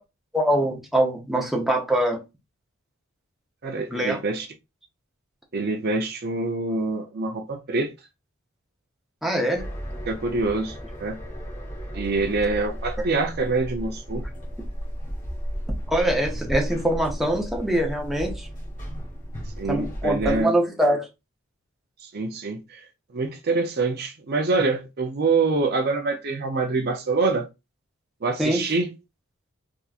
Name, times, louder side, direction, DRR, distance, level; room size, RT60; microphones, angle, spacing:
voice 1, 0.3-2.2 3.9-4.2 9.2-9.7 15.9-18.5 19.7-21.1 28.4-28.6, right 1 dB, ahead, 0.7 m, -23 dB
voice 2, 3.6-4.5 5.5-7.9 10.1-11.2 11.9-14.3 19.6-20.5 22.0-22.9 23.1-27.5 28.2-28.9, right 3 dB, 50° right, 0.6 m, -25 dB
sound 1, 9.5-20.4, equal, 40° left, 1.3 m, -34 dB
3.5 x 2.9 x 2.4 m
head